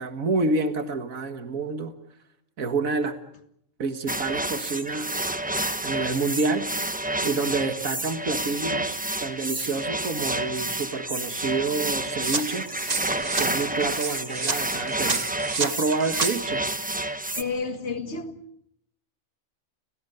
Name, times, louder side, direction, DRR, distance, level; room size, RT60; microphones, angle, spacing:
voice 1, 0.0-1.9 2.6-3.2 3.8-5.3 5.8-6.7 7.2-12.7 13.4-16.6, right 3 dB, 80° right, 9 dB, 2.1 m, -28 dB
sound 1, 4.1-17.4, right 1 dB, 5° right, 1.0 m, -29 dB
sound 2, 12.2-16.3, right 4 dB, 30° right, 1.2 m, -30 dB
voice 2, 17.4-18.4, left 4 dB, 55° left, 9 dB, 2.0 m, -31 dB
29.5 x 18.0 x 8.0 m, 0.73 s
omnidirectional pair, 1.4 m